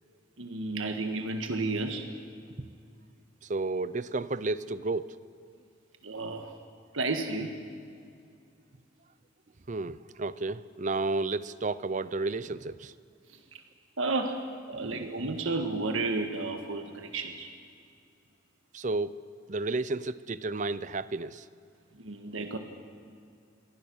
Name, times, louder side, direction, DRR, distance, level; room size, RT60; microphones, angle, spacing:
voice 1, 0.4-2.1 6.0-6.5 6.9-7.6 13.5-13.6 14.0-17.5 22.0-22.6, right 3 dB, 90° right, 5 dB, 1.6 m, -32 dB
voice 2, 3.5-5.2 9.7-12.9 14.7-15.1 18.7-19.2 19.5-21.5, right 3 dB, 40° right, 16 dB, 0.6 m, -32 dB
27.5 x 23.0 x 6.4 m, 2.4 s
head